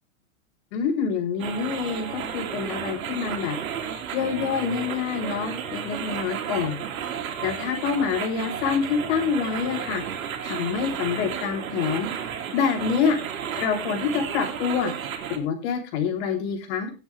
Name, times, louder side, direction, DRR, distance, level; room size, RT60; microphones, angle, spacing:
voice 1, 0.7-3.6 4.1-6.8 7.4-10.0 10.4-12.1 12.5-13.2 13.6-14.9 15.3-16.9, left 6 dB, 55° left, 4 dB, 3.6 m, -26 dB
sound 1, 1.4-15.4, right 8 dB, 85° right, 2.4 m, -33 dB
18.0 x 7.9 x 3.4 m, 0.29 s
supercardioid pair, 140°, 40 cm